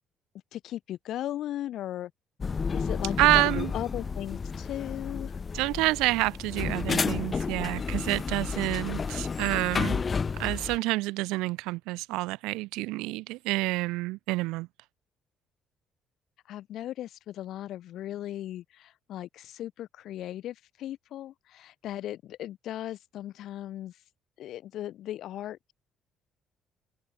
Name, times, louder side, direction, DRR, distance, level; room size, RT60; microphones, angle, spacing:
voice 1, 0.5-2.1 2.7-5.4 16.5-23.9 24.4-25.7, left 12 dB, 65° left, 2.1 m, -37 dB
sound 1, 2.4-10.8, left 5 dB, 40° left, 0.5 m, -31 dB
voice 2, 3.2-3.7 5.5-10.0 10.4-14.7, right 21 dB, 70° right, 0.7 m, -28 dB
hypercardioid pair, 45°, 0 cm